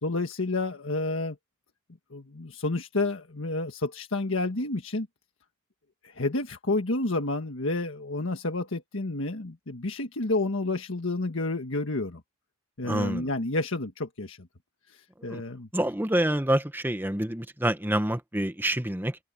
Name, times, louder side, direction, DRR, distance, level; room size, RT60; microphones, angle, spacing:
voice 1, 0.0-1.4 2.1-5.1 6.0-12.2 12.8-14.5 14.9-15.7, left 2 dB, 80° left, 1.5 m, -30 dB
voice 2, 12.8-13.3 15.2-15.4 15.7-19.2, right 1 dB, 10° right, 1.1 m, -27 dB
head